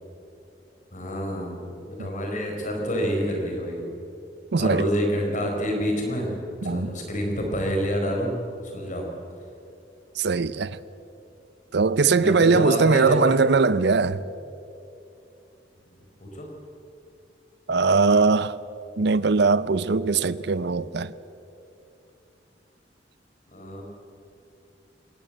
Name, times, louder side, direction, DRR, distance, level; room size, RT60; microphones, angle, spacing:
voice 1, 0.9-3.9 4.5-6.3 6.6-8.3 8.6-9.1 12.2-13.4 16.2-16.5 23.5-23.8, equal, 45° left, 4.6 m, -28 dB
voice 2, 4.5-4.9 6.6-6.9 10.2-10.8 11.7-14.2 17.7-18.6 19.0-21.1, right 4 dB, 65° right, 0.6 m, -21 dB
21.5 x 18.0 x 7.7 m
head